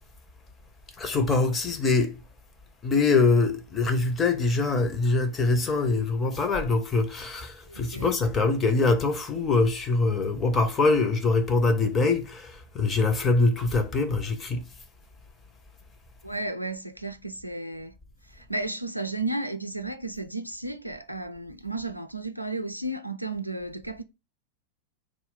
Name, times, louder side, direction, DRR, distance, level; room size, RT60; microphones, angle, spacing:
voice 1, 1.0-2.2 2.8-14.6, left 3 dB, 20° left, 0.7 m, -24 dB
voice 2, 7.7-8.1 16.2-17.9 18.3-24.0, right 2 dB, 90° right, 0.3 m, -33 dB
3.1 x 2.3 x 3.7 m
figure-of-eight pair, 90°, 0 cm